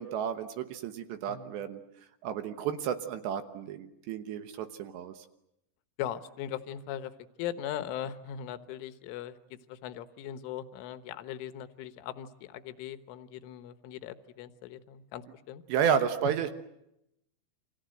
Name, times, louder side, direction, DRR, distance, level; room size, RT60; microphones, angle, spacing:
voice 1, 0.0-1.8 2.2-5.2 15.7-16.5, right 8 dB, 70° right, 9 dB, 3.1 m, -31 dB
voice 2, 6.0-7.1 7.4-15.6, left 10 dB, 80° left, 11 dB, 3.6 m, -39 dB
29.5 x 25.5 x 7.8 m, 0.83 s
omnidirectional pair, 5.7 m